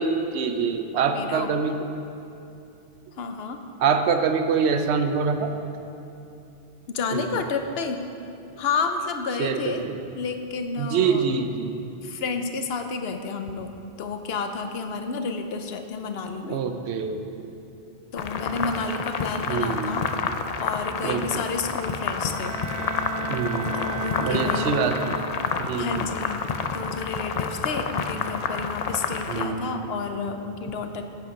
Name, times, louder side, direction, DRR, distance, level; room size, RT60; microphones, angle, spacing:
voice 1, 0.0-1.8 3.8-5.5 7.1-7.4 9.4-10.0 10.8-11.8 16.4-17.5 19.5-20.2 21.0-21.4 23.3-23.9 24.2-25.2 25.6-26.1 29.3-29.9, right 5 dB, 80° right, 7 dB, 0.9 m, -25 dB
voice 2, 1.1-1.5 3.2-3.6 6.9-8.0 8.6-9.8 10.2-11.3 12.0-16.7 18.1-20.1 20.6-22.6 23.7-24.7 25.8-26.4 26.7-31.0, left 4 dB, 70° left, 6 dB, 0.9 m, -30 dB
sound 1, 18.2-29.4, left 5 dB, 55° left, 0.4 m, -29 dB
Bowed string instrument, 22.3-25.8, right 3 dB, 40° right, 0.5 m, -33 dB
8.4 x 8.1 x 5.2 m, 2.8 s
omnidirectional pair, 1.1 m